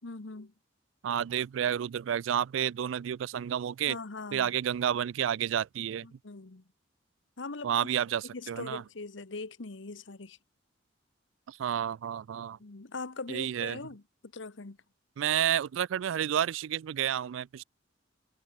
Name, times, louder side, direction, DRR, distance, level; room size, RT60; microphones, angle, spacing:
voice 1, 0.0-0.5 3.9-4.5 6.0-6.6 7.4-7.9 8.3-10.4 12.6-14.0 14.3-14.8, left 3 dB, 75° left, 1.1 m, -41 dB
voice 2, 1.0-4.0 4.3-6.1 7.6-8.8 11.5-12.6 13.3-13.8 15.2-17.6, right 9 dB, 85° right, 0.3 m, -30 dB
head